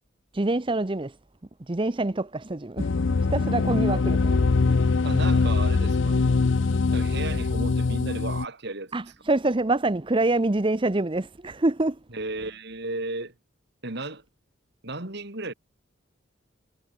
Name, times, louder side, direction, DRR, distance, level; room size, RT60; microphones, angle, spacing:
voice 1, 0.3-1.1 1.7-2.9 3.3-4.4 4.7-4.8 8.9-12.0, right 2 dB, 25° right, 0.8 m, -25 dB
sound 1, 2.8-8.4, left 4 dB, 70° left, 0.6 m, -23 dB
voice 2, 5.0-6.2 6.9-8.9 12.1-13.3 13.8-14.2 14.8-15.5, right 2 dB, 55° right, 4.0 m, -34 dB
head